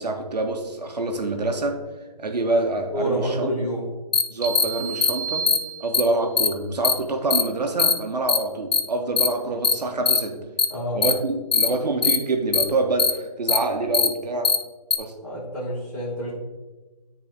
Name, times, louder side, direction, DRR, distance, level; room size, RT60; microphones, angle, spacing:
voice 1, 0.0-1.8 2.2-3.5 4.3-5.5 5.8-10.4 10.9-14.5 15.0-15.1, right 2 dB, 80° right, 4 dB, 1.0 m, -26 dB
voice 2, 2.9-3.9 10.7-11.0 15.2-16.3, equal, 5° left, -15 dB, 1.2 m, -28 dB
sound 1, 4.1-4.2 4.5-4.6 5.0-5.1 5.5-5.6 5.9-6.0 6.4-6.5 6.8-6.9 7.3-7.4 7.8-7.9 8.3-8.4 8.7-8.8 9.2-9.3 9.6-9.7 10.1-10.2 10.6-10.7 11.0-11.1 11.5-11.7 12.0-12.2 12.5-12.6 13.0-13.1 13.5-13.6 13.9-14.1 14.4-14.6 14.9-15.0, left 5 dB, 75° left, 0.6 m, -19 dB
sound 2, 4.4-6.4, right 6 dB, 60° right, 1.6 m, -32 dB
9.7 x 4.0 x 2.8 m, 1.2 s
hypercardioid pair, 180°, 21 cm